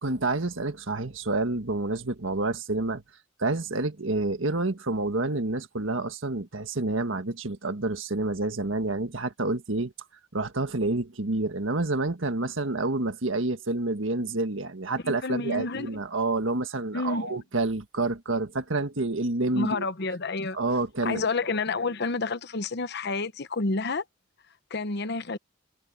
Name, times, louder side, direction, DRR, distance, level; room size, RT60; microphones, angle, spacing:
voice 1, 0.0-3.0 3.4-9.9 10.3-19.9 20.5-21.2, right 2 dB, 70° right, 1.7 m, -28 dB
voice 2, 15.0-15.9 16.9-17.3 19.5-20.6 21.0-24.0 24.7-25.4, left 3 dB, 55° left, 1.0 m, -29 dB
head